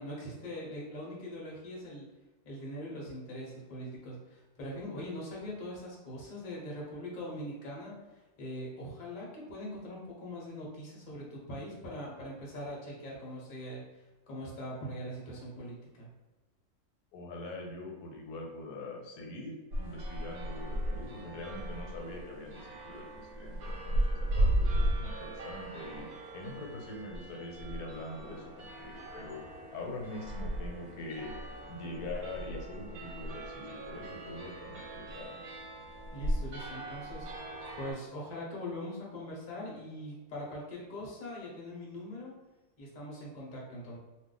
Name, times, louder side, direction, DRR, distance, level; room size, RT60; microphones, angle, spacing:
voice 1, 0.0-2.1 2.4-13.8 14.3-16.1 36.1-37.3 37.8-42.3 42.8-44.0, left 1 dB, 40° left, -4 dB, 0.8 m, -42 dB
voice 2, 17.1-31.3 31.7-35.5, left 2 dB, 85° left, 0 dB, 1.2 m, -43 dB
sound 1, 19.7-37.9, right 1 dB, 90° right, 1.1 m, -36 dB
2.5 x 2.3 x 3.8 m, 1.1 s
omnidirectional pair, 1.6 m